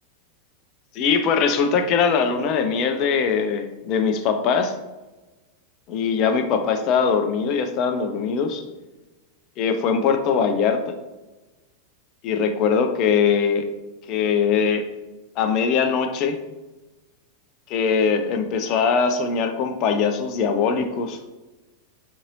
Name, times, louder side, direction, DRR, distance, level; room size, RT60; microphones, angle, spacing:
voice 1, 0.9-4.8 5.9-8.6 9.6-11.0 12.2-13.7 14.1-14.8 15.4-16.4 17.7-21.2, left 6 dB, 40° left, 7 dB, 0.4 m, -21 dB
3.9 x 2.7 x 2.6 m, 1.1 s
figure-of-eight pair, 90°, 0 cm